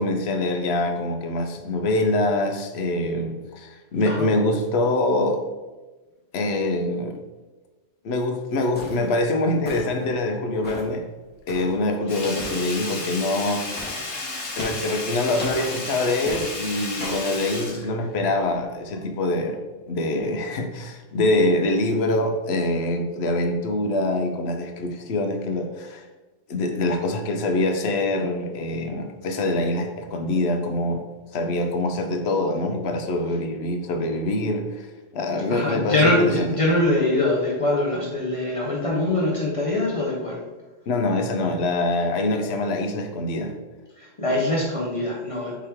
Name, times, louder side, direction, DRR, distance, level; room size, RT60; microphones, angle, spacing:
voice 1, 0.0-5.4 6.3-7.2 8.0-11.0 11.5-13.6 14.6-19.6 19.9-26.0 26.5-31.0 31.3-34.9 35.1-36.5 40.9-43.5, left 2 dB, 65° left, 5 dB, 0.8 m, -24 dB
sound 1, 8.7-9.1 9.6-10.1 10.6-10.9 11.5-11.8 12.4-12.6 13.7-14.0 14.6-14.9 15.4-15.7 16.2-16.5 17.0-17.3, left 2 dB, 10° left, 0.9 m, -36 dB
Sink (filling or washing), 12.1-18.6 18.9-19.0, left 3 dB, 90° left, 1.2 m, -33 dB
voice 2, 35.5-40.4 44.0-45.5, left 1 dB, 35° left, -4 dB, 0.6 m, -23 dB
4.7 x 2.9 x 3.4 m, 1.2 s
omnidirectional pair, 1.3 m